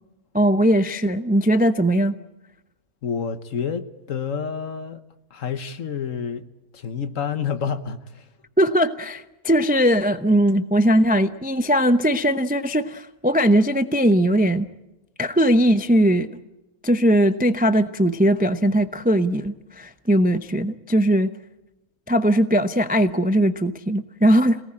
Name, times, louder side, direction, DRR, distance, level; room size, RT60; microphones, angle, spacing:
voice 1, 0.3-2.1 8.6-14.7 15.2-16.3 16.8-21.3 22.1-24.6, equal, 10° right, 0.4 m, -19 dB
voice 2, 3.0-5.0 5.3-6.5 6.7-8.3, left 6 dB, 55° left, 1.4 m, -29 dB
26.5 x 18.5 x 8.8 m
omnidirectional pair, 1.7 m